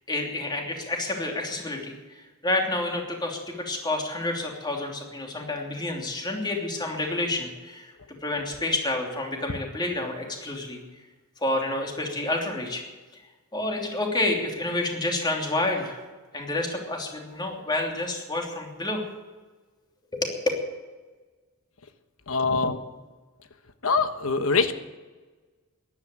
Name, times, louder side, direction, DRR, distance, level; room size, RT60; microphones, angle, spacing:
voice 1, 0.1-2.0 2.4-7.9 8.2-10.8 11.4-12.8 13.5-16.0 16.3-19.0 20.1-20.5, left 2 dB, 20° left, 1 dB, 3.0 m, -29 dB
voice 2, 22.3-22.8 23.8-24.8, left 4 dB, 70° left, 9 dB, 1.3 m, -23 dB
14.0 x 11.0 x 9.2 m, 1.3 s
head